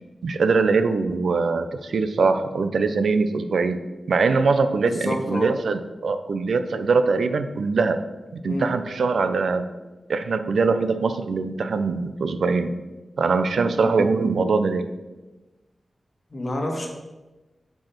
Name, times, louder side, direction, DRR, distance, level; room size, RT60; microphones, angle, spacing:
voice 1, 0.2-3.8 4.1-8.0 8.4-9.7 10.1-12.7 13.2-14.8, right 4 dB, 85° right, 9 dB, 0.5 m, -22 dB
voice 2, 4.8-5.5 8.4-8.7 13.7-14.0 16.3-16.9, left 1 dB, 40° left, 1 dB, 1.6 m, -29 dB
7.7 x 4.7 x 5.7 m, 1.1 s
wide cardioid pair, 125°, 0 cm